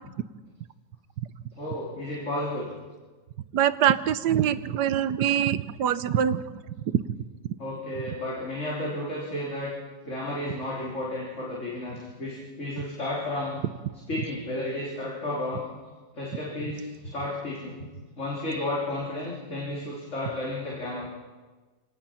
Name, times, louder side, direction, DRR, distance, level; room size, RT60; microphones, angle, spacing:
voice 1, 1.5-2.7 7.6-9.8 10.0-13.6 14.1-15.7 16.1-17.7 18.2-21.1, left 1 dB, 40° left, -5 dB, 3.8 m, -32 dB
voice 2, 3.5-6.4 6.9-7.0, right 10 dB, 65° right, 14 dB, 1.3 m, -23 dB
27.5 x 18.5 x 5.8 m, 1.3 s
omnidirectional pair, 2.0 m